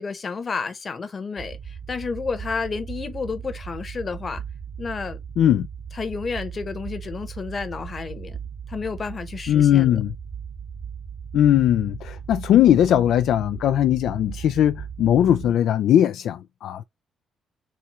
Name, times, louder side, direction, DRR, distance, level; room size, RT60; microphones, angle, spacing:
voice 1, 0.0-4.4 4.8-5.2 5.9-8.4 8.7-10.0, left 4 dB, 40° left, 1.0 m, -31 dB
sound 1, 1.4-15.5, right 7 dB, 35° right, 0.9 m, -37 dB
voice 2, 5.4-5.7 9.5-10.1 11.3-16.8, left 11 dB, 75° left, 0.3 m, -19 dB
4.4 x 2.3 x 4.7 m
cardioid pair, 90°, 0 cm